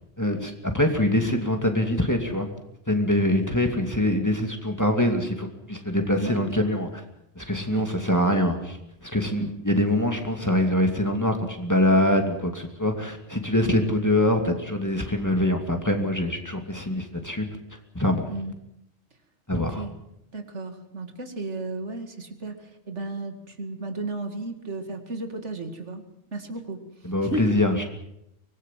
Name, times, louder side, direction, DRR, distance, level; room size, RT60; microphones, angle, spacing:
voice 1, 0.2-2.5 2.9-7.0 7.4-8.8 9.0-17.5 17.9-18.3 19.5-19.8 27.0-27.9, left 1 dB, 15° left, 4 dB, 2.6 m, -24 dB
voice 2, 19.6-19.9 20.3-22.6 22.9-26.0 26.3-26.8 27.2-27.6, right 2 dB, 85° right, 6 dB, 2.6 m, -33 dB
24.5 x 20.0 x 7.6 m, 0.81 s
omnidirectional pair, 1.2 m